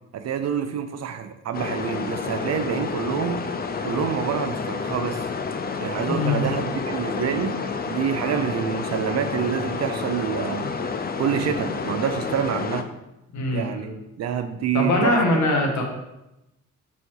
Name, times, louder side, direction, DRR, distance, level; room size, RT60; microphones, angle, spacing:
voice 1, 0.1-3.4 3.8-5.2 5.8-7.6 7.9-10.6 11.2-12.9 13.5-15.2, right 8 dB, 60° right, 8 dB, 0.6 m, -27 dB
sound 1, 1.5-12.8, left 5 dB, 30° left, 0.6 m, -29 dB
voice 2, 6.0-6.4 13.3-13.9 14.7-15.8, left 2 dB, 75° left, 1 dB, 1.5 m, -22 dB
5.6 x 4.2 x 4.6 m, 0.91 s
cardioid pair, 90°, 30 cm